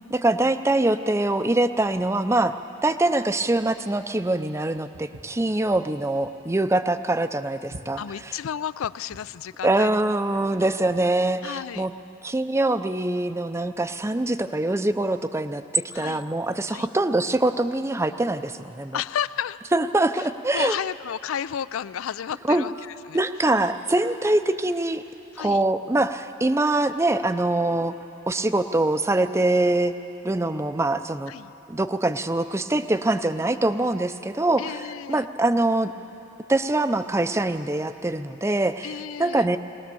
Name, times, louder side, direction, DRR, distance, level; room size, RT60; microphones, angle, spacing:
voice 1, 0.1-2.5 2.8-8.3 9.6-11.9 12.2-19.0 19.7-20.8 22.5-22.6 23.1-25.0 25.4-27.9 28.3-29.9 30.2-31.3 31.7-34.8 35.1-35.9 36.5-38.9 39.2-39.6, right 2 dB, 15° right, 10 dB, 0.5 m, -23 dB
Walk footsteps, 4.9-9.4, right 1 dB, 75° right, 1.3 m, -47 dB
voice 2, 8.0-10.0 11.4-11.9 15.9-16.2 16.7-16.9 18.9-19.6 20.5-23.2 25.3-25.6 31.3-31.5 34.6-35.2 38.8-39.5, left 9 dB, 75° left, 17 dB, 0.4 m, -32 dB
21.0 x 19.0 x 7.0 m, 2.9 s
head